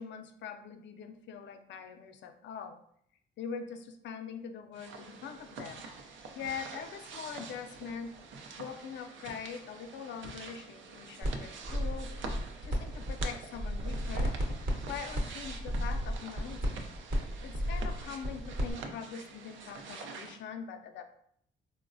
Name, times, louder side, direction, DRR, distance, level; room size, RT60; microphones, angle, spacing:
voice 1, 0.0-2.8 3.4-8.1 8.5-14.3 14.8-16.9 17.4-21.0, left 6 dB, 65° left, 7 dB, 0.4 m, -43 dB
sound 1, 4.7-20.4, right 4 dB, 75° right, 0.5 m, -46 dB
sound 2, 11.2-11.3 11.6-13.2 13.5-18.7, equal, 50° right, 0.9 m, -33 dB
3.8 x 2.0 x 2.5 m, 0.67 s
cardioid pair, 90°, 20 cm